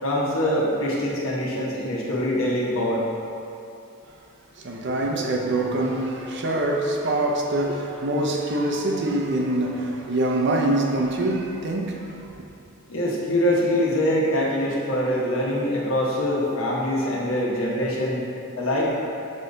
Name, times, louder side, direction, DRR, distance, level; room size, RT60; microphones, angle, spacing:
voice 1, 0.0-3.0 12.9-18.2 18.6-18.9, left 1 dB, 85° left, 1.3 m, -24 dB
voice 2, 4.6-12.3, right 1 dB, 60° right, 0.7 m, -24 dB
6.5 x 3.9 x 3.9 m
head